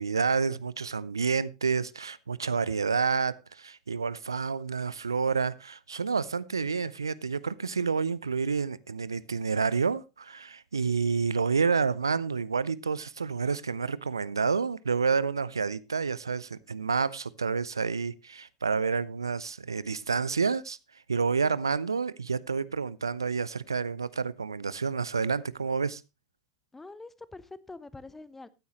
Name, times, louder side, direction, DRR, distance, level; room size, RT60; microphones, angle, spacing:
voice 1, 0.0-20.8 21.1-26.0, right 5 dB, 80° right, 0.5 m, -29 dB
voice 2, 26.7-28.5, left 3 dB, 10° left, 0.8 m, -45 dB
14.5 x 9.3 x 3.0 m
figure-of-eight pair, 85°, 2 cm